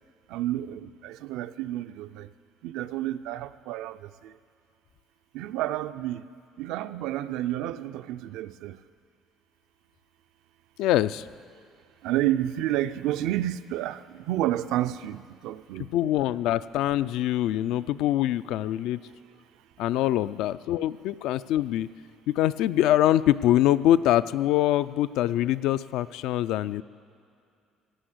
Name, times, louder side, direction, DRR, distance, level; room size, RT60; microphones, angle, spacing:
voice 1, 0.3-2.3 2.6-4.4 5.3-6.3 6.6-8.8 12.0-15.9, right 13 dB, 85° right, 0.4 m, -30 dB
voice 2, 10.8-11.2 15.9-19.0 19.8-21.9 22.3-26.8, left 13 dB, 80° left, 0.3 m, -24 dB
16.5 x 8.4 x 8.0 m
cardioid pair, 130°, 0 cm